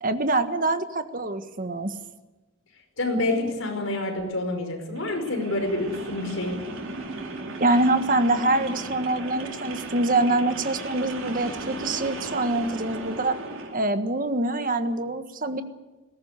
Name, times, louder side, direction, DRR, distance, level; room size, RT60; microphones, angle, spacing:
voice 1, 0.0-1.9 7.6-13.4 13.7-15.6, right 2 dB, 45° right, 9 dB, 1.6 m, -25 dB
voice 2, 3.0-6.7, left 2 dB, 80° left, 5 dB, 5.1 m, -27 dB
sound 1, 4.9-13.8, right 2 dB, 80° right, 4.7 m, -36 dB
20.5 x 17.5 x 8.2 m, 1.2 s
head